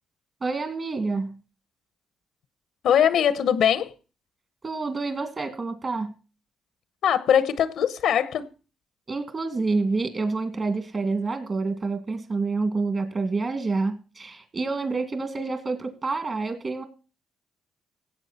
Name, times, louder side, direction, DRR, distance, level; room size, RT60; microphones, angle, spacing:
voice 1, 0.4-1.4 4.6-6.1 9.1-16.8, right 3 dB, 35° right, 2.4 m, -28 dB
voice 2, 2.8-3.9 7.0-8.5, left 9 dB, 75° left, 0.9 m, -21 dB
17.0 x 7.8 x 4.2 m
cardioid pair, 90°, 0 cm